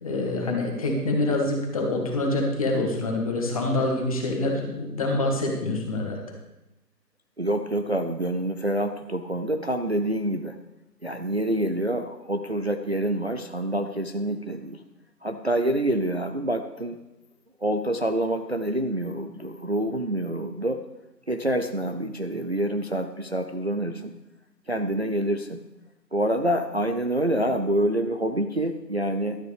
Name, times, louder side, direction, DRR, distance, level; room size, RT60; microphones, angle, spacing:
voice 1, 0.0-6.2, left 2 dB, 20° left, 1 dB, 1.4 m, -26 dB
voice 2, 7.4-10.6 11.0-14.8 15.2-17.0 17.6-20.8 21.3-24.1 24.7-25.6 26.1-29.4, right 1 dB, 45° right, 7 dB, 0.4 m, -27 dB
12.0 x 12.0 x 3.3 m, 0.97 s
figure-of-eight pair, 155°, 49 cm